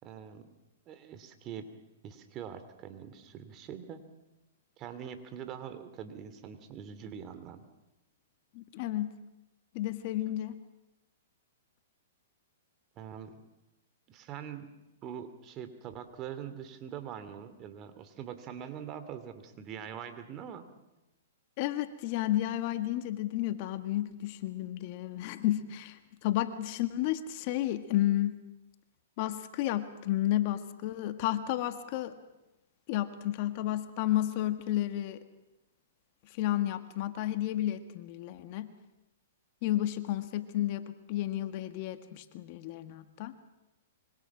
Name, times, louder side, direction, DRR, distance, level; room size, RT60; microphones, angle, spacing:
voice 1, 0.0-0.5 0.9-1.7 2.0-4.0 4.8-7.6 13.0-13.4 14.1-14.7 15.0-20.6, right 8 dB, 30° right, 10 dB, 2.6 m, -43 dB
voice 2, 8.5-9.1 9.7-10.6 21.6-28.4 29.2-32.1 32.9-35.2 36.3-38.7 39.6-43.3, left 14 dB, 45° left, 9 dB, 1.7 m, -32 dB
25.5 x 24.0 x 6.1 m, 0.97 s
hypercardioid pair, 130°, 0 cm